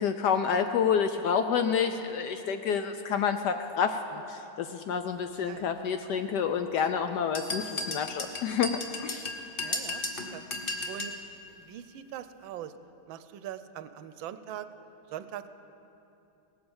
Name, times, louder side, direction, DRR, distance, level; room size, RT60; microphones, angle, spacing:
voice 1, 0.0-9.3, left 7 dB, 70° left, 8 dB, 1.0 m, -29 dB
sound 1, 7.3-11.2, left 2 dB, 35° left, 0.9 m, -34 dB
voice 2, 9.6-10.4 10.9-11.1 11.5-12.7 13.1-14.7 15.1-15.5, right 11 dB, 80° right, 12 dB, 1.3 m, -41 dB
18.0 x 8.7 x 7.1 m, 2.9 s
omnidirectional pair, 2.2 m